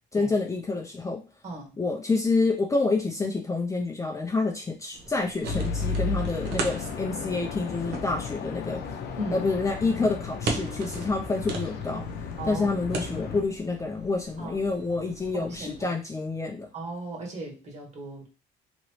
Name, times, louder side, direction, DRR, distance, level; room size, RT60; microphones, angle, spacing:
voice 1, 0.1-1.2 1.8-8.8 9.3-12.1 12.4-16.7, left 3 dB, 20° left, 1 dB, 0.5 m, -28 dB
voice 2, 1.4-1.7 6.5-6.7 9.2-9.5 12.4-12.7 14.4-14.6 15.3-15.9 16.7-18.3, right 1 dB, 40° right, 0 dB, 1.5 m, -37 dB
sound 1, 4.9-15.8, right 3 dB, 80° right, 0.8 m, -39 dB
sound 2, 5.5-13.4, left 4 dB, 70° left, 0.6 m, -34 dB
3.0 x 2.6 x 3.1 m, 0.30 s
cardioid pair, 110°, 17 cm